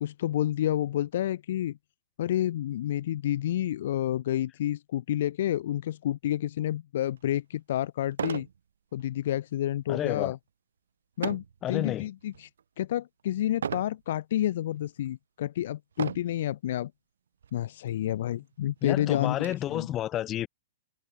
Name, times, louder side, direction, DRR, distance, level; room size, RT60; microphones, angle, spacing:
voice 1, 0.0-1.8 2.2-8.5 8.9-10.4 11.2-12.5 12.8-16.9 17.5-19.9, left 12 dB, 55° left, 1.3 m, -29 dB
sound 1, 7.2-7.3 8.1-8.6 9.0-9.3 11.2-11.6 12.2-12.6 13.6-14.0 14.7-14.8 15.9-16.4 17.4-17.5 17.9-18.0 18.4-19.5, right 8 dB, 65° right, 1.7 m, -35 dB
voice 2, 9.9-10.4 11.6-12.1 18.8-20.5, left 12 dB, 25° left, 4.2 m, -30 dB
figure-of-eight pair, 105°, 0 cm